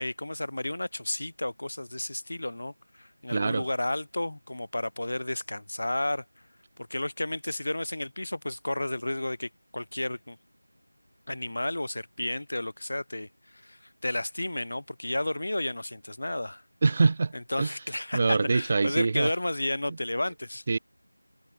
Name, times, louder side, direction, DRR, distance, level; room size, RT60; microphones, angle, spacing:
voice 1, 0.0-6.2 6.9-10.4 11.3-16.6 17.3-20.6, left 1 dB, 50° left, 7.5 m, -32 dB
voice 2, 3.3-3.7 16.8-17.3 17.6-17.8 18.1-19.3 20.7-20.8, right 4 dB, 20° right, 2.6 m, -24 dB
figure-of-eight pair, 175°, 0 cm